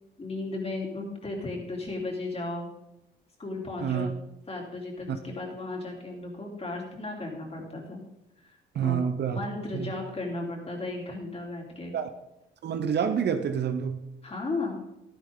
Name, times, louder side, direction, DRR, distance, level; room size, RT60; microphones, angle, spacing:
voice 1, 0.2-2.7 3.4-4.1 4.5-8.0 8.8-9.0 9.3-11.9 14.2-14.8, left 2 dB, 30° left, 3.4 m, -35 dB
voice 2, 3.8-4.1 5.1-5.2 8.7-9.4 9.7-9.9 11.9-12.1 12.6-14.0, right 7 dB, 60° right, 0.9 m, -28 dB
12.0 x 10.5 x 3.9 m
cardioid pair, 90°, 20 cm